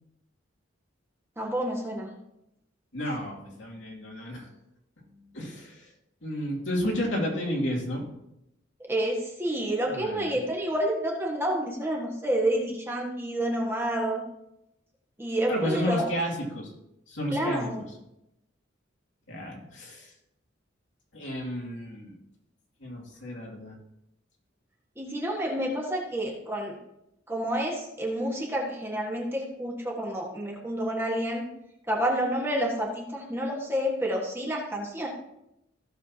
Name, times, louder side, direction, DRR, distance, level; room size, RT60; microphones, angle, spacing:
voice 1, 1.4-2.1 3.0-3.2 8.9-14.2 15.2-16.1 17.3-17.8 25.0-26.7 27.3-31.4 31.9-35.1, right 1 dB, 10° right, -2 dB, 1.6 m, -29 dB
voice 2, 2.9-4.5 5.3-5.9 6.2-8.0 9.9-10.3 15.5-16.7 17.1-17.7 19.3-20.1 21.1-22.1 22.8-23.8, equal, 70° left, -2 dB, 2.7 m, -32 dB
15.5 x 6.9 x 2.9 m, 0.84 s
head